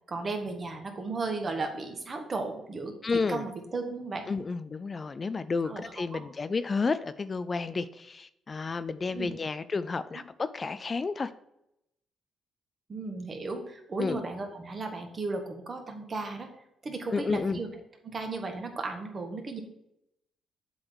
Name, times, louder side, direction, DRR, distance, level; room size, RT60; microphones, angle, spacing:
voice 1, 0.1-2.9 3.3-4.3 5.6-6.2 9.1-9.3 10.1-10.2 12.9-16.5 16.8-17.7 18.0-19.6, right 3 dB, 35° right, 4 dB, 1.5 m, -35 dB
voice 2, 3.0-3.5 4.3-11.3 14.0-14.2 17.1-17.6, left 4 dB, 35° left, 14 dB, 0.4 m, -31 dB
7.8 x 3.9 x 6.2 m, 0.81 s
cardioid pair, 90°, 0 cm